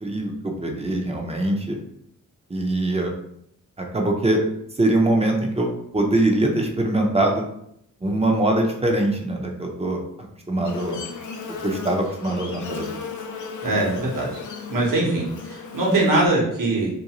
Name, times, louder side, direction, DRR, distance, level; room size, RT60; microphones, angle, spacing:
voice 1, 0.0-1.8 2.5-3.1 3.8-4.4 4.8-7.4 8.0-11.0 11.6-13.0, right 1 dB, 20° right, 1 dB, 0.5 m, -23 dB
Buzz, 10.6-16.3, left 5 dB, 60° left, 0.5 m, -35 dB
voice 2, 13.6-14.3 14.7-16.9, right 2 dB, 70° right, -3 dB, 1.0 m, -22 dB
2.5 x 2.3 x 2.9 m, 0.73 s
cardioid pair, 65°, 34 cm